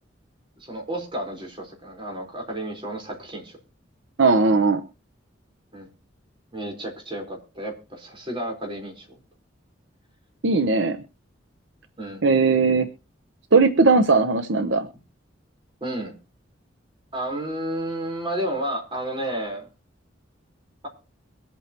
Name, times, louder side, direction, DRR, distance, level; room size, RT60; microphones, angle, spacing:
voice 1, 0.6-3.6 5.7-5.9 6.5-9.1 12.0-12.2 15.8-16.1 17.1-19.7, right 1 dB, 25° right, 0 dB, 4.3 m, -31 dB
voice 2, 4.2-4.8 10.4-11.0 12.2-12.9 13.5-14.9, right 3 dB, 70° right, 9 dB, 0.8 m, -18 dB
23.5 x 8.4 x 3.0 m, 0.32 s
head